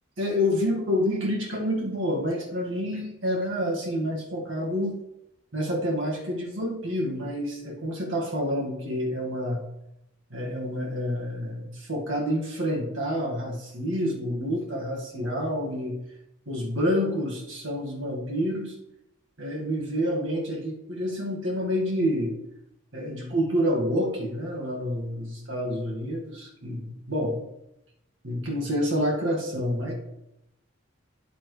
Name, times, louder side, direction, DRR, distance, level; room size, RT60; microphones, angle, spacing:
voice 1, 0.2-4.9 5.5-9.6 10.3-16.0 16.5-18.7 19.4-22.3 22.9-27.4 28.2-29.9, equal, 75° right, -1 dB, 1.9 m, -28 dB
9.3 x 8.4 x 3.3 m, 0.85 s
head